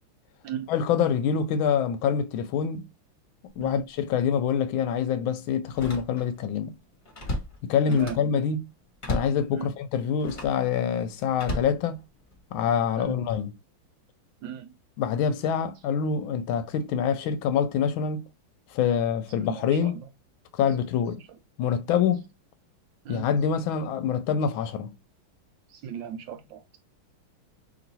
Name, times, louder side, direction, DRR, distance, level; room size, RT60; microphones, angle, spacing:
voice 1, 0.7-2.9 3.6-6.8 7.6-8.7 9.1-12.0 12.5-13.5 15.0-18.3 18.7-20.0 20.6-21.2 21.6-22.2 23.1-24.9, left 7 dB, 75° left, 1.3 m, -25 dB
Slam, 3.5-3.8 4.2-4.3 5.6-6.5 6.8-8.4 9.0-9.4 10.2-10.6 11.3-12.4 13.0-13.3, left 1 dB, 30° left, 1.0 m, -35 dB
voice 2, 19.4-19.9 23.0-23.2 25.7-26.8, right 9 dB, 75° right, 1.1 m, -37 dB
3.0 x 3.0 x 3.9 m
omnidirectional pair, 2.3 m